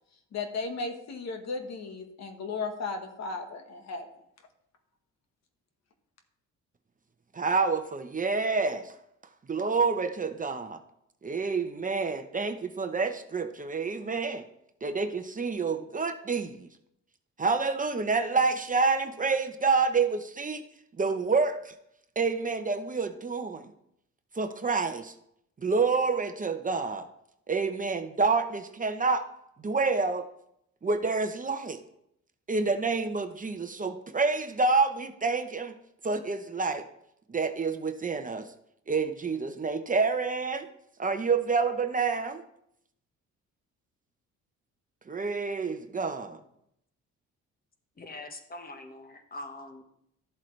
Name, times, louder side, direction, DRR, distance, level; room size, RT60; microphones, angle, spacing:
voice 1, 0.3-4.1, left 4 dB, 60° left, 6 dB, 1.4 m, -35 dB
voice 2, 7.3-8.9 9.5-10.8 11.2-14.5 14.8-16.7 17.4-20.6 21.0-21.7 22.2-23.7 24.3-25.1 25.6-27.1 27.5-29.3 29.6-30.3 30.8-31.8 32.5-35.7 36.0-36.8 37.3-38.5 38.9-40.7 41.0-42.4 45.1-46.4, right 4 dB, 25° right, 8 dB, 0.8 m, -28 dB
voice 3, 48.0-49.8, left 2 dB, 30° left, 6 dB, 1.4 m, -43 dB
12.0 x 7.5 x 3.3 m, 0.75 s
cardioid pair, 90°, 30 cm